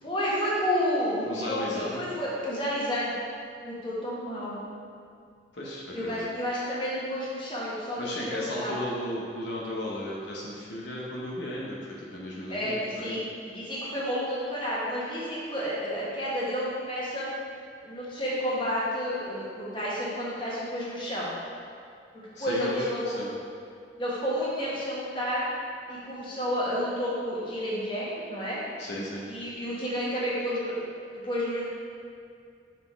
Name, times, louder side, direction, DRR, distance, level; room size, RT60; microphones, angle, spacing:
voice 1, 0.0-3.1 3.6-4.7 5.9-8.8 12.5-17.3 17.8-21.4 22.4-23.3 24.0-25.4 25.9-28.6 29.3-30.8 31.2-31.7, equal, 30° left, -7 dB, 1.5 m, -30 dB
voice 2, 1.2-2.1 5.5-6.3 8.0-13.2 22.3-23.3 28.8-29.2, left 1 dB, 75° left, -4 dB, 0.9 m, -35 dB
5.9 x 4.2 x 4.6 m, 2.4 s
head